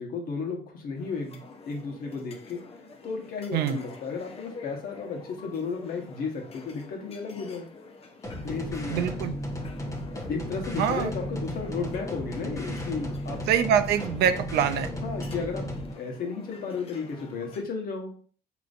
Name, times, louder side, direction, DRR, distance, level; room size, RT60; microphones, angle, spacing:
voice 1, 0.0-2.7 3.0-7.7 8.4-9.2 10.3-13.5 15.0-18.2, left 5 dB, 60° left, 3 dB, 1.1 m, -34 dB
sound 1, 1.0-17.6, left 3 dB, 35° left, 0.7 m, -48 dB
sound 2, 8.2-15.9, equal, 20° left, 1.0 m, -34 dB
voice 2, 8.9-9.3 10.8-11.1 13.5-14.9, right 9 dB, 75° right, 9 dB, 0.5 m, -24 dB
5.0 x 3.0 x 2.5 m, 0.43 s
cardioid pair, 110°, 17 cm